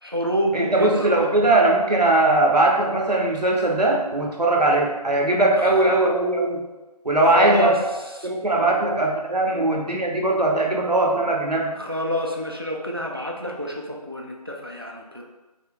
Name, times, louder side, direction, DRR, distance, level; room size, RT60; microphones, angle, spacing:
voice 1, 0.0-1.5 5.6-6.0 7.2-8.3 8.6-8.8 9.5-9.7 11.8-15.2, left 1 dB, 35° right, 1 dB, 0.4 m, -28 dB
voice 2, 0.5-6.6 7.0-7.7 8.2-11.7, right 2 dB, 85° right, 1 dB, 0.9 m, -20 dB
5.4 x 2.0 x 3.5 m, 1.1 s
figure-of-eight pair, 175°, 20 cm